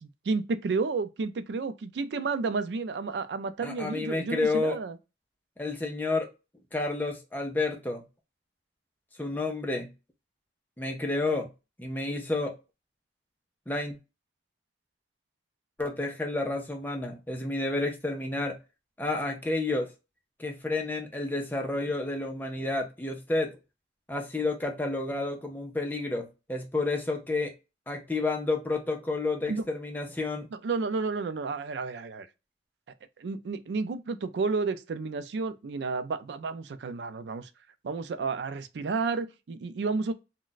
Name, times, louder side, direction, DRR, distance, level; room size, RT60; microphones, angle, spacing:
voice 1, 0.0-5.0 29.5-29.6 30.6-32.3 33.2-37.5 37.8-40.1, right 4 dB, 75° right, 0.4 m, -31 dB
voice 2, 3.6-4.8 5.6-6.3 6.7-8.0 9.2-9.9 10.8-11.5 11.8-12.5 13.7-14.0 15.8-18.6 19.0-19.9 20.4-23.5 24.1-27.5 27.9-30.5, left 2 dB, 10° left, 0.5 m, -30 dB
2.4 x 2.2 x 3.8 m
head